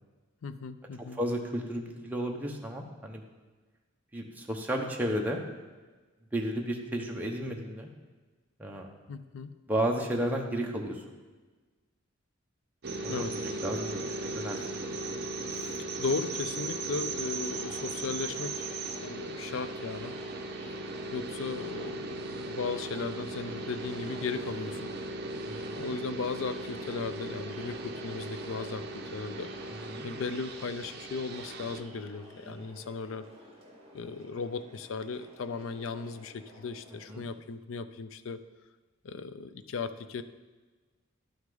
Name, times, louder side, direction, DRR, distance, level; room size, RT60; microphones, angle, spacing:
voice 1, 0.4-1.2 9.1-9.5 13.1-13.3 15.5-18.7 19.0-20.1 20.6-20.8 21.1-24.9 25.8-29.5 30.0-33.2 33.9-38.4 39.0-40.2, left 4 dB, 70° left, 12 dB, 0.4 m, -36 dB
voice 2, 1.2-3.2 4.1-5.4 6.3-7.9 8.6-8.9 9.7-11.0 13.0-14.6 25.5-25.8 29.9-30.1 32.5-32.6 37.1-37.2, right 1 dB, 10° right, 0 dB, 0.8 m, -33 dB
sound 1, 12.8-31.8, right 2 dB, 50° right, 0.7 m, -37 dB
Crowd, 17.2-37.1, equal, 30° right, 1.9 m, -52 dB
11.5 x 6.0 x 3.9 m, 1.3 s
head